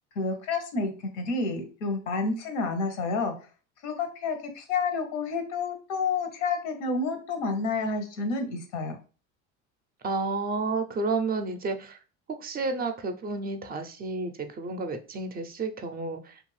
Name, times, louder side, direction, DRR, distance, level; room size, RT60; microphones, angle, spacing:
voice 1, 0.2-3.3 3.8-9.0, left 4 dB, 90° left, 7 dB, 0.7 m, -29 dB
voice 2, 10.0-12.0 12.3-16.4, right 3 dB, 25° right, 7 dB, 0.4 m, -31 dB
2.6 x 2.4 x 3.1 m, 0.36 s
supercardioid pair, 85°, 35 cm